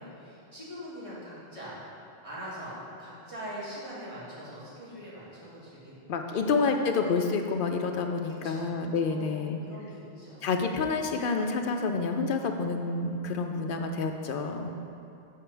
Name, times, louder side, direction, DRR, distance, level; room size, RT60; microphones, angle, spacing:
voice 1, 0.0-1.7 2.2-6.4 8.2-8.7 9.1-10.5 11.1-11.6 13.6-13.8, equal, 30° right, -9 dB, 1.9 m, -43 dB
voice 2, 6.1-9.6 10.4-14.7, left 4 dB, 60° left, 5 dB, 0.6 m, -28 dB
7.5 x 4.3 x 4.5 m, 2.7 s
omnidirectional pair, 1.1 m